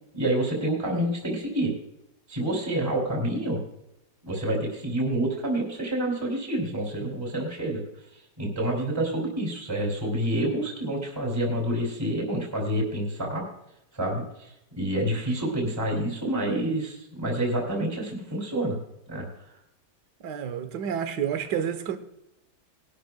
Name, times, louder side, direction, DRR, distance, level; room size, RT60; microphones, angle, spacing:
voice 1, 0.1-1.7 2.3-3.6 4.2-7.8 8.1-13.5 13.9-18.8 19.1-19.3, right 1 dB, 15° right, 2.7 m, -28 dB
voice 2, 20.2-22.0, right 8 dB, 80° right, 1.6 m, -30 dB
20.0 x 12.0 x 2.2 m
omnidirectional pair, 1.8 m